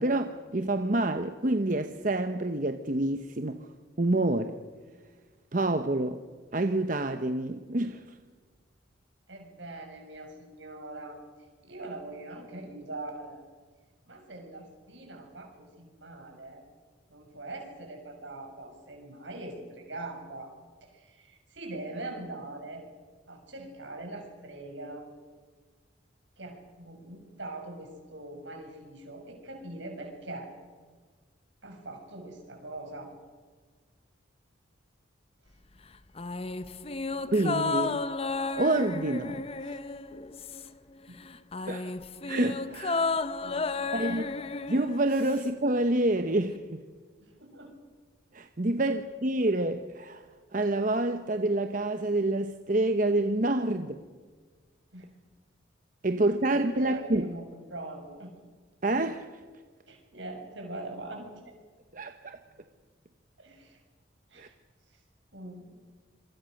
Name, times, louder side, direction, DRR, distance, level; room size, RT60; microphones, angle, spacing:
voice 1, 0.0-3.6 4.0-4.6 5.5-6.2 6.5-8.0 37.3-38.0 38.6-39.8 41.7-41.9 42.3-43.1 43.9-44.3 44.7-46.8 48.3-50.2 50.5-54.0 56.0-57.3 58.8-59.3 61.9-62.4 64.4-64.5, right 2 dB, 45° right, 8 dB, 1.0 m, -27 dB
voice 2, 9.3-11.2 11.6-13.4 14.0-16.6 17.1-20.5 20.8-22.8 23.3-25.0 26.4-30.5 31.6-33.1 36.6-36.7 41.1-41.2 43.4-44.2 47.2-47.8 54.9-55.1 56.5-57.4 57.7-58.3 59.9-61.3 63.4-63.8 64.3-64.5 65.3-65.7, right 2 dB, 75° right, 3 dB, 6.7 m, -42 dB
sound 1, 36.2-40.9 41.2-45.5 45.8-45.9, left 3 dB, 30° left, 0.7 m, -33 dB
26.5 x 24.0 x 6.5 m, 1.5 s
head